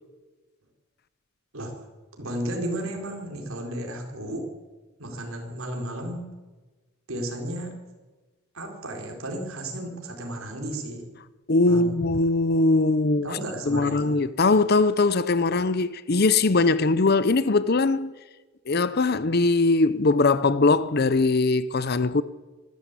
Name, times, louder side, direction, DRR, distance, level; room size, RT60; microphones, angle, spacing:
voice 1, 2.2-4.5 5.0-6.3 7.1-7.8 8.5-11.1 11.7-11.9 13.2-14.1, right 1 dB, 80° right, 4.5 m, -33 dB
voice 2, 11.5-13.4 13.7-18.1 18.7-22.2, left 3 dB, 50° left, 0.7 m, -21 dB
25.5 x 13.5 x 8.3 m
head